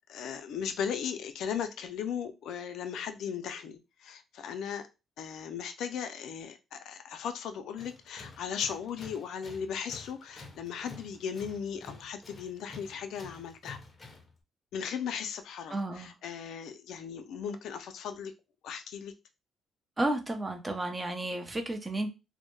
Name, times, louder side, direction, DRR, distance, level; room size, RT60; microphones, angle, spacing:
voice 1, 0.1-4.9 5.2-13.8 14.7-18.3 18.6-19.1, left 7 dB, 80° left, 0.4 m, -37 dB
Tools, 7.8-14.4, left 3 dB, 30° left, 0.6 m, -50 dB
voice 2, 15.7-16.1 20.0-22.1, right 1 dB, 25° right, 0.6 m, -32 dB
2.1 x 2.1 x 3.0 m
cardioid pair, 90°, 0 cm